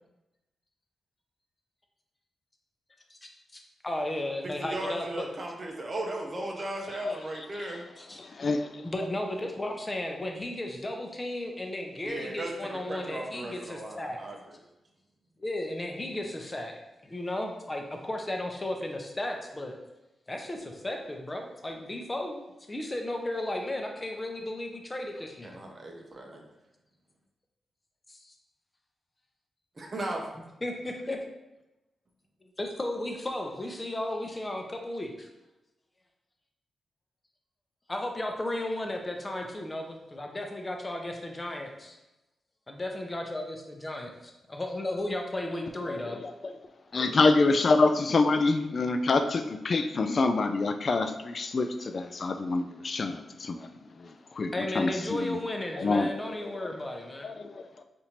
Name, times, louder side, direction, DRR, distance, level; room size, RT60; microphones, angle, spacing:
voice 1, 3.1-5.1 8.0-8.2 8.8-14.2 15.4-16.8 17.0-19.8 20.3-25.6 28.1-28.3 30.6-31.2 32.6-35.3 37.9-42.0 42.7-46.2 54.5-57.3, left 1 dB, 30° left, 2 dB, 0.7 m, -34 dB
voice 2, 4.4-7.8 12.0-12.5 12.9-14.6 25.4-26.4 29.8-30.2 46.9-47.2, right 1 dB, 40° right, 1 dB, 0.6 m, -36 dB
voice 3, 7.0-7.8 8.2-8.8 45.9-46.5 46.9-55.4 55.8-56.5 57.2-57.8, left 3 dB, 55° left, 8 dB, 0.3 m, -27 dB
4.2 x 2.6 x 2.9 m, 0.98 s
supercardioid pair, 45°, 0 cm